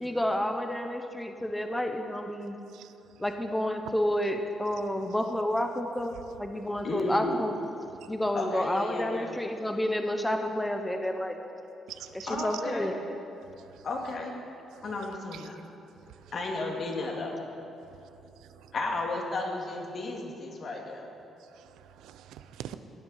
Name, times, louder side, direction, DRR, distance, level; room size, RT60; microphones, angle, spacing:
voice 1, 0.0-2.6 3.2-6.1 6.4-7.5 8.1-11.4 12.4-13.0, left 1 dB, 10° left, 5 dB, 0.9 m, -30 dB
voice 2, 6.8-7.4 8.3-9.3 12.3-13.0 13.8-14.4 14.8-15.6 16.3-17.4 18.7-21.1, left 2 dB, 50° left, 0 dB, 2.3 m, -33 dB
voice 3, 11.9-12.5 13.6-13.9 14.7-14.8 15.3-15.5 16.1-16.3 18.0-18.7 21.5-22.8, right 12 dB, 85° right, 11 dB, 0.5 m, -45 dB
16.5 x 7.7 x 5.7 m, 2.8 s
cardioid pair, 90°, 0 cm